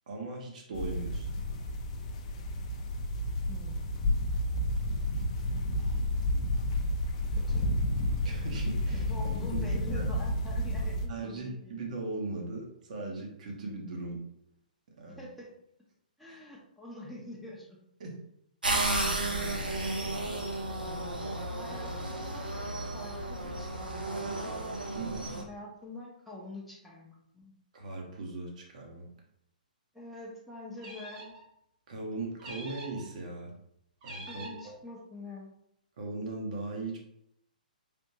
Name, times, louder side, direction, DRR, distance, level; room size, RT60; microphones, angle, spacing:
voice 1, 0.1-1.3 8.2-9.1 9.5-9.6 9.9-10.1 11.1-14.2 15.0-15.3 16.3-16.4 18.0-18.2 24.9-25.3 27.7-29.1 31.9-33.5 34.0-34.7 36.0-37.0, right 3 dB, 55° right, 1 dB, 1.0 m, -38 dB
sound 1, 0.7-11.1, left 1 dB, 45° left, 0.5 m, -31 dB
voice 2, 3.5-3.8 7.3-7.7 8.9-11.8 15.2-15.6 16.2-17.8 19.6-20.2 21.5-22.5 22.8-24.6 25.3-27.5 29.9-31.3 34.3-35.6, left 1 dB, ahead, -6 dB, 0.6 m, -46 dB
sound 2, 18.6-25.4, right 2 dB, 85° right, 0.7 m, -33 dB
sound 3, 30.8-31.4 32.4-33.1 34.0-34.7, right 2 dB, 35° right, 1.2 m, -45 dB
3.4 x 2.5 x 2.9 m, 0.76 s
figure-of-eight pair, 130°, 5 cm